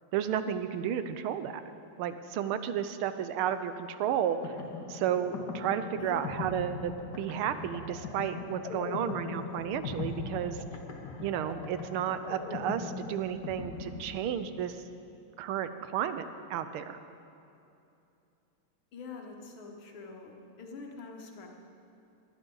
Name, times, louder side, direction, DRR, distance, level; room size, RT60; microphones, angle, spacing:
voice 1, 0.1-1.6 2.0-4.5 4.9-10.6 11.2-14.8 15.4-17.0, right 9 dB, 90° right, 11 dB, 1.6 m, -32 dB
sound 1, 4.1-14.7, left 4 dB, 60° left, 1.7 m, -40 dB
voice 2, 6.0-6.3 18.9-21.5, left 4 dB, 80° left, 1 dB, 2.3 m, -45 dB
19.5 x 12.0 x 3.9 m, 2.8 s
omnidirectional pair, 2.3 m